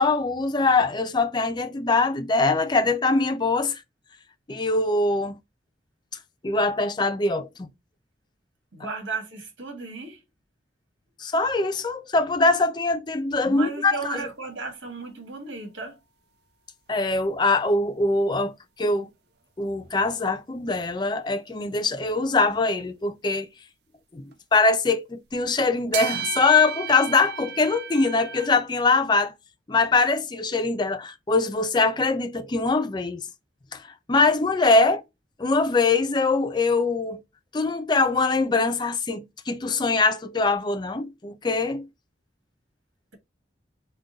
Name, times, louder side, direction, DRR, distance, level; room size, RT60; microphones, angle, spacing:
voice 1, 0.0-3.8 4.5-5.4 6.4-7.7 11.2-14.2 16.9-19.1 19.6-23.5 24.1-24.2 24.5-29.3 29.7-33.3 33.7-33.8 34.1-35.0 35.4-37.2 37.5-41.9, left 3 dB, 25° left, 0.4 m, -23 dB
voice 2, 8.7-10.2 13.4-16.0, right 4 dB, 90° right, 1.7 m, -34 dB
sound 1, 17.2-17.3 22.4-22.5 24.3-24.4 25.9-28.5, right 9 dB, 60° right, 0.5 m, -33 dB
3.8 x 2.3 x 3.8 m
head